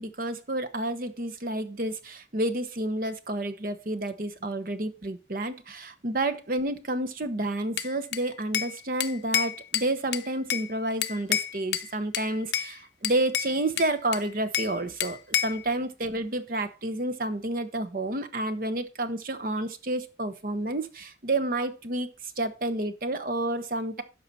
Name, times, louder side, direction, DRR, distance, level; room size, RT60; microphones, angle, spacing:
voice 1, 0.0-22.1 22.4-24.0, right 1 dB, 50° right, 10 dB, 0.9 m, -30 dB
Bell / Glass, 7.8-8.7 9.0-10.7 11.0-11.9 12.1-12.7 13.0-14.7 15.0-15.6, left 10 dB, 75° left, 0.6 m, -29 dB
12.0 x 4.9 x 4.1 m, 0.31 s
head